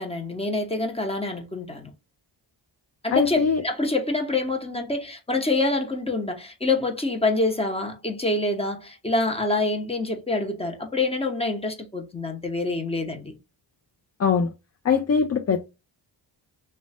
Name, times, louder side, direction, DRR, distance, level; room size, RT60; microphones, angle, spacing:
voice 1, 0.0-1.9 3.0-13.4, left 2 dB, 10° left, 0.8 m, -26 dB
voice 2, 3.1-3.6 14.2-14.5 14.8-15.7, left 6 dB, 35° left, 0.4 m, -21 dB
3.0 x 2.2 x 4.1 m
cardioid pair, 65°, 48 cm